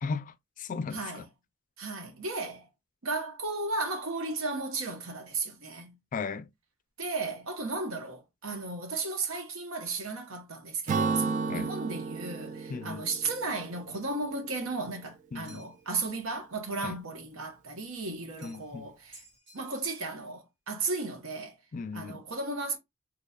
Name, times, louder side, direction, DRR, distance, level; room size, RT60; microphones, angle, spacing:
voice 1, 0.0-1.0 6.1-6.5 11.5-11.7 12.7-13.1 15.3-15.7 16.8-17.0 18.4-18.9 21.7-22.2, left 4 dB, 40° left, 0.4 m, -36 dB
voice 2, 0.9-1.2 1.8-2.7 3.0-5.9 7.0-19.2 19.5-21.5 21.9-22.8, right 3 dB, 75° right, 1.1 m, -35 dB
Acoustic guitar / Strum, 10.9-14.5, right 4 dB, 35° right, 0.3 m, -33 dB
sound 1, 15.4-15.9 18.4-18.8 19.1-20.1, right 2 dB, 55° right, 2.4 m, -55 dB
4.0 x 3.1 x 2.3 m
head